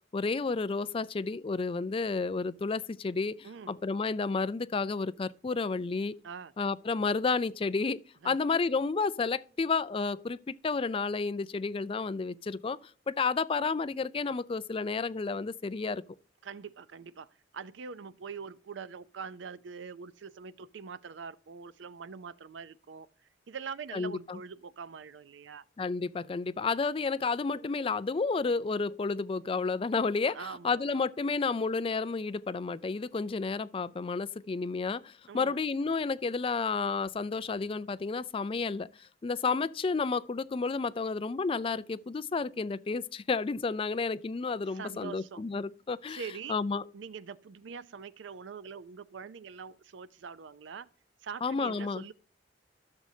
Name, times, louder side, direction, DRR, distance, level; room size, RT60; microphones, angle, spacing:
voice 1, 0.1-6.2 6.6-12.8 13.1-16.0 23.9-24.4 25.8-30.4 30.6-38.9 39.2-46.2 46.5-46.8 51.4-52.0, left 4 dB, 30° left, 0.3 m, -31 dB
voice 2, 3.4-3.8 6.2-6.5 8.2-8.4 16.4-23.1 23.5-25.6 30.3-30.8 35.3-35.6 44.7-45.4 46.1-46.6 46.9-50.9 51.2-52.1, right 6 dB, 80° right, 0.5 m, -43 dB
13.5 x 6.4 x 2.7 m
head